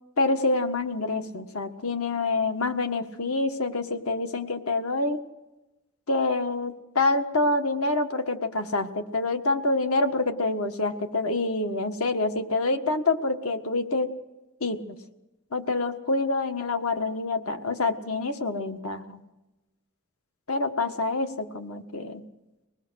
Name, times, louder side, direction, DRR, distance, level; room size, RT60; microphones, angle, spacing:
voice 1, 0.2-5.2 6.1-14.1 14.6-15.0 15.5-19.2 20.5-22.2, left 2 dB, 85° left, 7 dB, 1.6 m, -27 dB
25.0 x 19.5 x 6.4 m, 1.0 s
head